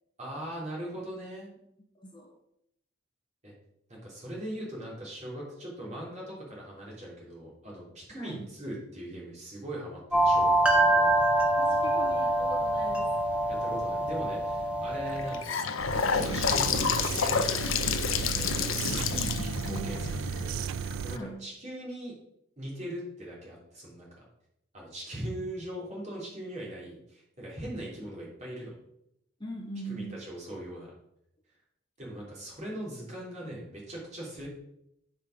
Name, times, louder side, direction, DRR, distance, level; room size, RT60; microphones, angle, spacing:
voice 1, 0.2-1.5 3.4-3.5 3.9-11.1 13.5-15.6 15.9-22.1 22.6-24.2 24.7-28.7 29.9-30.9 32.0-34.5, right 1 dB, 35° right, -4 dB, 3.1 m, -40 dB
voice 2, 2.0-2.3 8.1-8.4 11.6-13.2 19.1-20.0 21.1-21.4 29.4-30.1, right 1 dB, 20° left, -1 dB, 1.2 m, -40 dB
sound 1, 10.1-15.4, right 1 dB, 5° right, 1.0 m, -25 dB
Gurgling / Sink (filling or washing) / Bathtub (filling or washing), 15.1-21.1, left 6 dB, 75° left, 0.6 m, -29 dB
sound 2, 15.8-21.2, right 7 dB, 80° right, 0.3 m, -35 dB
7.9 x 5.4 x 5.0 m, 0.77 s
head